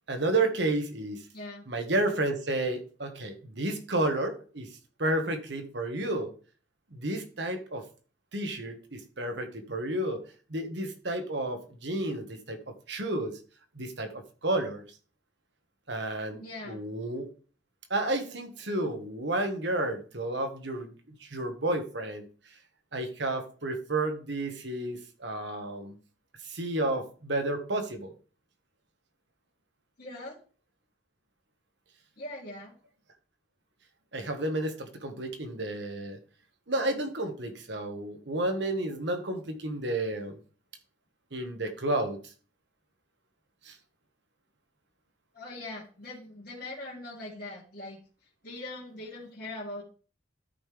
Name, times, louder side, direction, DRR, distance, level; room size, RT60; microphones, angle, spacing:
voice 1, 0.1-1.2 1.7-4.7 5.0-6.3 6.9-7.9 8.3-10.2 10.5-13.4 13.7-14.8 15.9-17.3 17.9-20.9 21.2-22.2 22.9-26.0 26.4-28.1 34.1-36.2 36.7-40.4 41.3-42.3 43.6-43.8, right 2 dB, 65° right, 6 dB, 1.5 m, -31 dB
voice 2, 1.3-1.7 16.3-16.8 30.0-30.4 32.2-32.7 45.3-48.0 48.4-49.8, left 2 dB, 50° left, -6 dB, 2.4 m, -41 dB
13.0 x 5.3 x 3.4 m, 0.39 s
head